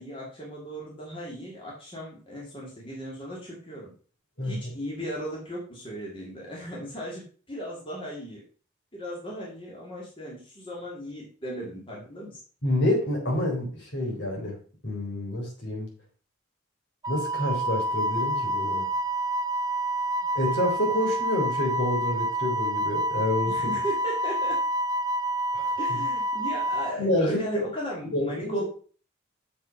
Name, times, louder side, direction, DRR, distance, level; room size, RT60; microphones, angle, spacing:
voice 1, 0.0-3.9 4.4-8.4 8.9-12.4 23.4-24.6 25.8-28.6, equal, 25° left, -4 dB, 2.6 m, -37 dB
voice 2, 12.6-14.6 14.8-15.9 17.1-18.9 20.3-23.6 25.5-26.0 27.0-27.4 28.1-28.6, left 1 dB, 60° left, -1 dB, 3.8 m, -28 dB
Wind instrument woodwind instrument, 17.0-26.9, right 1 dB, 20° right, 0.4 m, -28 dB
7.2 x 6.1 x 5.9 m, 0.40 s
head